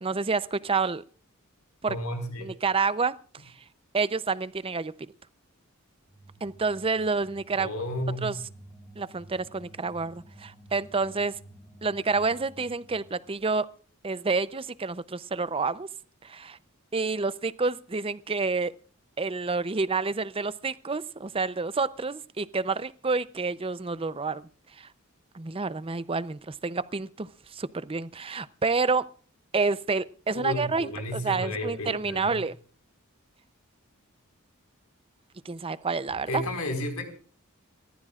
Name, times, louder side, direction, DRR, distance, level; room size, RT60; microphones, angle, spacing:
voice 1, 0.0-1.0 1.8-2.0 2.4-3.2 3.4-3.5 3.9-5.1 6.4-7.7 8.2-8.4 9.0-11.4 11.8-13.7 14.0-15.9 16.2-16.6 16.9-18.7 19.2-24.5 24.8-24.9 25.3-29.1 29.5-32.6 35.4-36.4, right 4 dB, 25° right, 15 dB, 0.6 m, -29 dB
voice 2, 1.9-2.5 7.6-8.3 30.3-32.4 36.3-37.1, left 1 dB, 80° left, 6 dB, 4.9 m, -32 dB
sound 1, 6.1-13.4, right 1 dB, 20° left, 3.2 m, -52 dB
28.5 x 14.5 x 2.4 m, 0.40 s
head